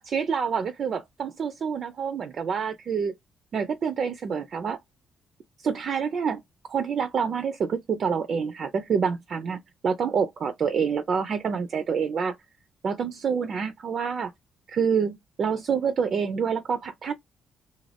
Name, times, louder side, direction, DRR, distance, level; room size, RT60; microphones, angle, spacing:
voice 1, 0.0-3.1 3.5-4.8 5.6-6.4 6.7-12.4 12.8-14.3 14.7-17.1, right 6 dB, 55° right, 0.5 m, -27 dB
2.5 x 2.2 x 3.2 m
cardioid pair, 90°, 0 cm